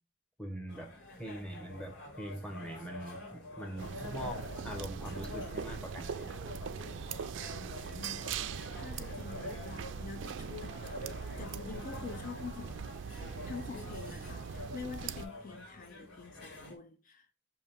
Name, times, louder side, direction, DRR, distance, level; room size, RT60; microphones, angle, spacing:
voice 1, 0.4-6.2, equal, 5° left, 0.9 m, -43 dB
sound 1, 0.7-16.8, left 2 dB, 90° left, 1.8 m, -47 dB
sound 2, 3.8-15.3, right 6 dB, 70° right, 0.4 m, -41 dB
voice 2, 7.5-12.9 13.2-17.3, left 5 dB, 45° left, 0.4 m, -47 dB
5.7 x 2.7 x 3.3 m
head